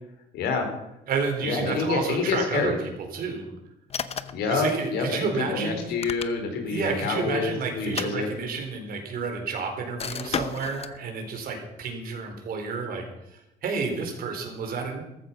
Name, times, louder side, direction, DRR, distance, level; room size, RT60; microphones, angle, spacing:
voice 1, 0.3-0.7 1.4-2.7 4.3-8.3, left 4 dB, 80° left, 4 dB, 4.2 m, -27 dB
voice 2, 1.1-3.5 4.5-5.9 6.6-13.0 13.6-15.0, right 5 dB, 60° right, 4 dB, 4.2 m, -30 dB
sound 1, 3.9-4.5 5.8-6.7 7.8-8.8 10.0-11.0, left 7 dB, 35° left, 0.9 m, -34 dB
14.5 x 14.0 x 5.7 m, 0.89 s
cardioid pair, 110°, 17 cm